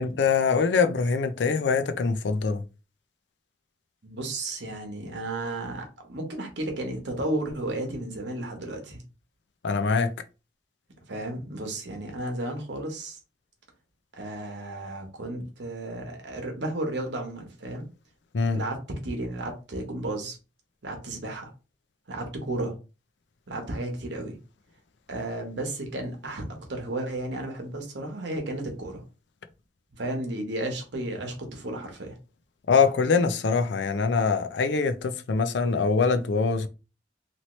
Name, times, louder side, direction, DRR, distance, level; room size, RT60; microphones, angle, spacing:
voice 1, 0.0-2.6 9.6-10.1 18.3-18.6 32.7-36.7, left 5 dB, 75° left, 0.5 m, -23 dB
voice 2, 4.0-9.0 11.1-13.2 14.1-17.8 18.5-20.4 20.8-21.5 22.1-22.7 23.5-24.4 25.1-26.4 26.7-29.0 29.9-32.2, right 1 dB, 75° right, 1.1 m, -33 dB
3.0 x 2.8 x 3.0 m
head